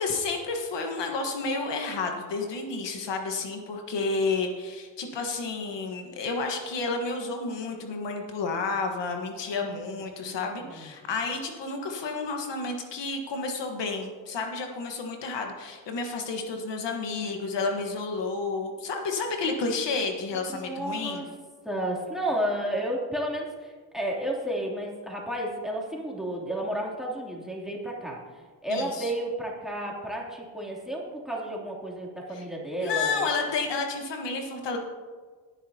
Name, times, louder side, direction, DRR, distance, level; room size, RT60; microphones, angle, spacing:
voice 1, 0.0-21.2 28.7-29.1 32.3-32.4 32.8-34.8, left 4 dB, 75° left, 3 dB, 1.5 m, -31 dB
voice 2, 10.2-10.9 20.6-21.3 21.6-28.2 28.6-33.3, right 1 dB, ahead, -3 dB, 3.0 m, -32 dB
17.5 x 9.7 x 2.9 m, 1.5 s
cardioid pair, 85°, 43 cm